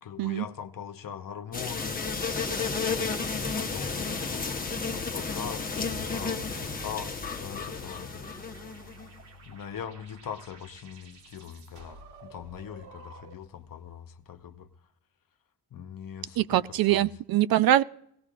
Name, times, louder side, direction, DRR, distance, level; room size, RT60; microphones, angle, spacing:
voice 1, 0.0-2.0 3.6-4.6 4.9-8.7 9.5-14.7 15.7-17.1, left 8 dB, 55° left, 1.0 m, -41 dB
sound 1, 1.5-9.1, left 4 dB, 20° left, 1.0 m, -32 dB
sound 2, 5.8-13.6, left 1 dB, 85° right, 2.3 m, -49 dB
voice 2, 16.4-17.8, right 13 dB, 60° right, 0.5 m, -23 dB
18.0 x 16.5 x 2.5 m
cardioid pair, 100°, 41 cm